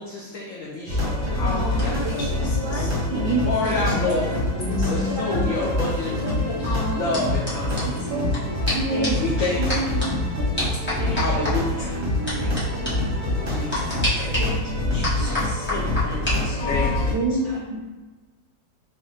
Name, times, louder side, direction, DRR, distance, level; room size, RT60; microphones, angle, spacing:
voice 1, 0.0-1.9 3.4-4.3 4.9-6.2 6.9-7.8 9.2-9.8 11.1-12.0 13.5-14.6 15.7-17.1, left 3 dB, 85° left, -4 dB, 0.7 m, -29 dB
sound 1, 0.9-17.1, left 1 dB, 35° right, 0.7 m, -26 dB
sound 2, 1.2-4.4 4.7-8.4 8.7-8.8 9.0-9.3 9.7-10.1 10.6-11.5 12.3-12.6 12.9-13.0 13.7-14.4 15.0-16.4 16.7-17.0, left 1 dB, 10° left, 0.6 m, -30 dB
voice 2, 1.4-1.8 2.2-2.9 3.6-3.9 4.8-5.1 6.6-7.2 8.9-9.5 11.0-11.4 12.4-12.9 14.4-14.6 14.9-15.7 16.2-17.6, left 2 dB, 55° left, -6 dB, 1.2 m, -34 dB
voice 3, 3.1-3.5 3.9-4.0 4.5-5.5 7.9-8.3 8.7-9.2 9.6-10.0 10.4-10.5 12.1-12.3 17.1-17.8, right 2 dB, 75° right, -1 dB, 1.1 m, -28 dB
3.5 x 2.1 x 3.7 m, 1.2 s
omnidirectional pair, 2.0 m